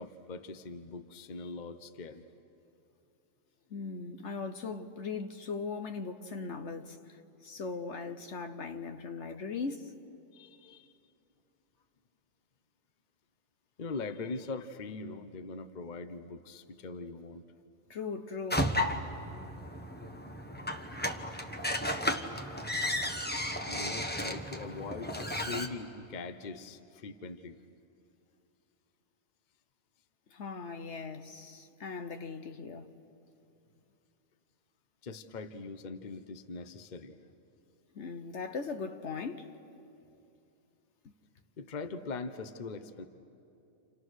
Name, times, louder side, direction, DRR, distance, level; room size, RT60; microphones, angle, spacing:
voice 1, 0.0-2.2 10.3-10.9 13.8-17.4 23.6-27.6 35.0-37.2 41.6-43.0, left 4 dB, 40° left, 0.9 m, -41 dB
voice 2, 3.7-9.9 17.9-18.8 30.3-32.9 37.9-39.5, left 4 dB, 60° left, 1.2 m, -39 dB
sound 1, 18.5-25.7, left 1 dB, 10° left, 1.0 m, -34 dB
30.0 x 28.5 x 6.4 m
omnidirectional pair, 1.4 m